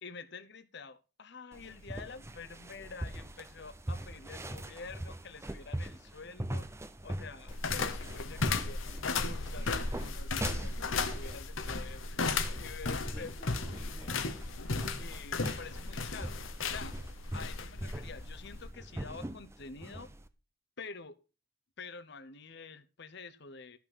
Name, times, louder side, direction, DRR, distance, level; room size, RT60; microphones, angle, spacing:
voice 1, 0.0-6.7 7.0-12.3 12.6-13.3 14.8-17.0 17.3-20.1 20.8-21.2 21.8-23.8, left 4 dB, 55° left, 1.0 m, -48 dB
sound 1, 1.5-20.3, right 1 dB, 15° right, 0.7 m, -43 dB
sound 2, 7.5-18.7, left 4 dB, 80° left, 1.1 m, -35 dB
voice 2, 9.9-10.2 12.5-14.4, left 1 dB, 20° left, 1.5 m, -53 dB
13.0 x 5.9 x 5.4 m
head